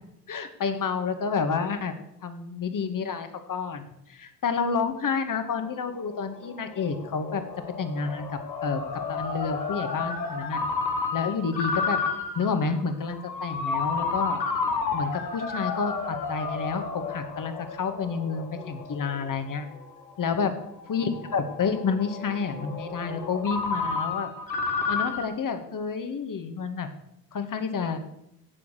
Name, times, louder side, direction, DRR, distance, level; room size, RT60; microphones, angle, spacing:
voice 1, 0.3-1.9 2.2-7.4 7.8-8.8 9.1-10.6 11.1-12.0 12.4-14.4 14.9-19.7 20.2-20.5 20.9-24.3 24.9-26.9 27.3-28.0, left 5 dB, 40° left, 8 dB, 2.1 m, -29 dB
Ringtone, 5.5-25.2, left 4 dB, 90° left, 1.5 m, -32 dB
17.0 x 7.1 x 6.6 m, 0.81 s
figure-of-eight pair, 50°, 49 cm